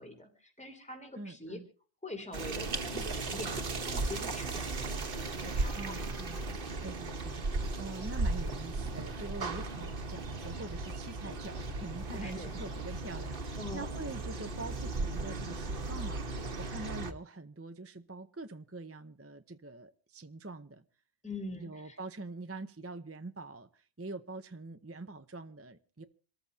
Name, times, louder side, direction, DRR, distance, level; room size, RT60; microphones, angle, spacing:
voice 1, 0.0-1.6 2.0-5.9 6.3-6.6 12.1-12.6 13.6-14.0 21.2-22.0, left 2 dB, 5° left, 4 dB, 3.2 m, -44 dB
voice 2, 1.1-1.7 5.7-6.4 6.8-20.8 21.5-26.0, right 2 dB, 15° right, 9 dB, 0.6 m, -44 dB
sound 1, 2.3-17.1, right 3 dB, 55° right, 1.4 m, -36 dB
27.0 x 14.0 x 2.8 m, 0.40 s
omnidirectional pair, 1.1 m